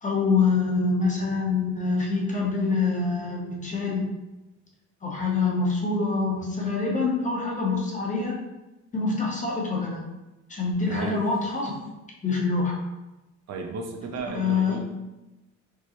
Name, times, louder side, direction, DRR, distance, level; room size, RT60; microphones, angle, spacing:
voice 1, 0.0-4.1 5.0-8.4 8.9-10.0 10.5-11.7 12.2-12.8 14.3-14.8, left 4 dB, 25° left, -2 dB, 0.8 m, -25 dB
voice 2, 10.9-11.2 13.5-14.8, right 4 dB, 60° right, 3 dB, 0.5 m, -34 dB
4.6 x 2.0 x 2.9 m, 1.0 s
cardioid pair, 140°, 30 cm